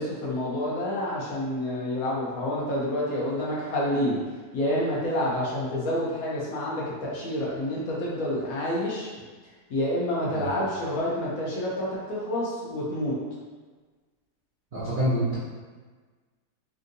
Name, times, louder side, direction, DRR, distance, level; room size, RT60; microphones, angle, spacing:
voice 1, 0.0-4.2 4.5-9.1 9.7-13.1, left 1 dB, 65° left, -5 dB, 1.1 m, -28 dB
voice 2, 14.7-15.4, right 1 dB, 60° right, -10 dB, 0.5 m, -26 dB
3.5 x 2.7 x 2.6 m, 1.4 s
omnidirectional pair, 1.7 m